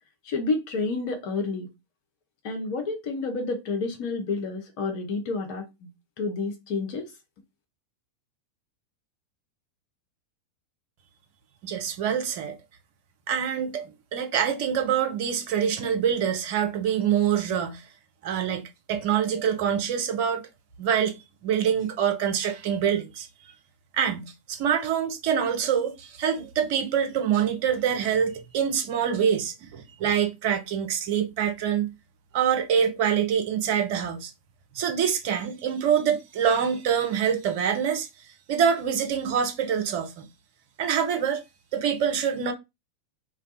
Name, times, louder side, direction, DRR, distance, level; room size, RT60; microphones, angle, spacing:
voice 1, 0.2-1.7 2.4-5.9 6.2-7.1, left 3 dB, 45° left, 0.7 m, -29 dB
voice 2, 11.6-12.6 13.3-17.8 18.2-20.5 20.8-21.2 21.4-23.3 23.9-31.9 32.3-34.3 34.7-38.1 38.5-40.3 40.8-41.4 41.7-42.5, right 8 dB, 45° right, 0.6 m, -25 dB
2.2 x 2.2 x 2.7 m
figure-of-eight pair, 90°, 0 cm